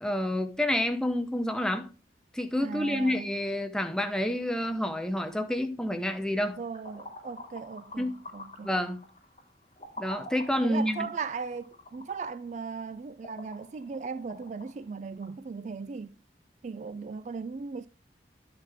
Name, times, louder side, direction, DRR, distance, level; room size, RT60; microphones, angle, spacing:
voice 1, 0.0-1.9 2.3-6.6 8.0-8.2 8.6-9.0 10.0-11.1, left 1 dB, 5° left, 0.7 m, -29 dB
voice 2, 2.6-3.3 6.6-8.7 10.6-16.2 16.6-17.9, right 5 dB, 40° right, 0.3 m, -37 dB
sound 1, 6.6-15.4, left 1 dB, 35° left, 3.3 m, -47 dB
10.0 x 6.6 x 3.5 m
head